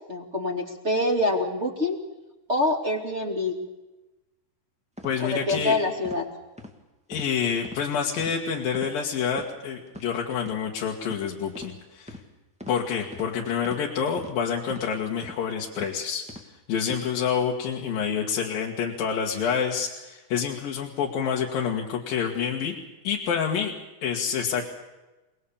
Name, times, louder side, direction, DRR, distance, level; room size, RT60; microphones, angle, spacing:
voice 1, 0.1-2.0 2.5-3.6 5.2-6.3, left 2 dB, 20° right, 1 dB, 2.6 m, -26 dB
voice 2, 5.0-5.8 7.1-12.2 12.7-16.2 16.7-22.7 23.0-23.7 24.0-24.7, left 7 dB, 90° left, -1 dB, 3.6 m, -27 dB
sound 1, 5.0-5.1 5.5-5.7 6.0-6.2 6.6-6.7 7.1-7.3 7.6-7.8 8.2-8.4 8.7-8.9 9.3-9.5 9.9-10.1 10.4-10.6 11.1-11.2 11.5-11.7 12.1-12.2 12.6-12.8 13.1-13.3 13.6-13.8 14.2-14.3 14.7-14.9 15.2-15.4 15.8-15.9 16.3-16.5 16.8-17.0, left 1 dB, 5° right, 1.5 m, -41 dB
28.5 x 20.0 x 7.2 m, 1.1 s
omnidirectional pair, 3.9 m